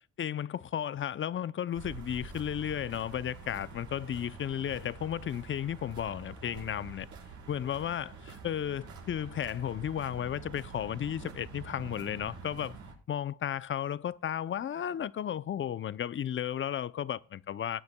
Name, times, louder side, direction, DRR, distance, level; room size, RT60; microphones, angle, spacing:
voice 1, 0.2-7.1 7.5-12.8 13.1-17.8, left 9 dB, 40° left, 0.6 m, -34 dB
sound 1, 1.7-12.9, right 4 dB, 70° right, 4.5 m, -46 dB
19.5 x 9.5 x 2.3 m
cardioid pair, 90°, 30 cm